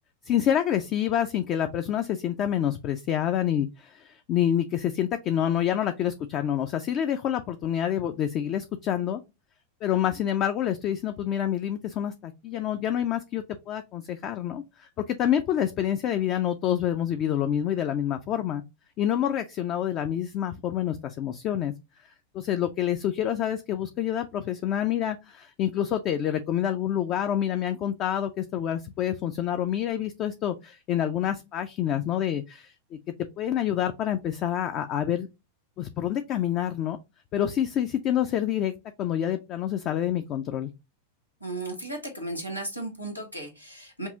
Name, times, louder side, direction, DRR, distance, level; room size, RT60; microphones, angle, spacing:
voice 1, 0.2-9.2 9.8-18.6 19.0-21.7 22.3-33.0 33.4-35.3 35.8-37.0 37.3-38.7 39.0-40.7, left 10 dB, 35° left, 0.4 m, -27 dB
voice 2, 41.4-44.1, right 2 dB, 90° left, 1.2 m, -35 dB
5.3 x 2.4 x 2.7 m
figure-of-eight pair, 90°, 0 cm